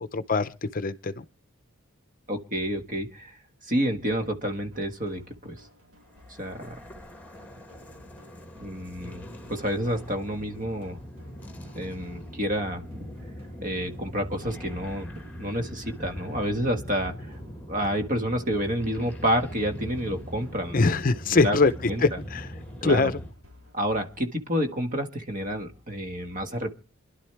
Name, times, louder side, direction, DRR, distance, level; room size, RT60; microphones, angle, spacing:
voice 1, 0.1-1.2 20.7-22.5 22.8-23.2, left 3 dB, 40° left, 0.6 m, -23 dB
voice 2, 2.3-3.3 3.6-5.5 6.3-6.8 8.6-11.0 11.7-13.1 13.6-17.4 17.7-20.9 21.3-21.6 21.9-22.0 22.8-23.1 23.7-26.7, equal, 40° right, 1.7 m, -29 dB
sound 1, 4.7-24.2, left 2 dB, 80° right, 4.2 m, -55 dB
sound 2, 6.1-23.3, equal, 5° left, 1.7 m, -41 dB
27.0 x 11.5 x 3.4 m
head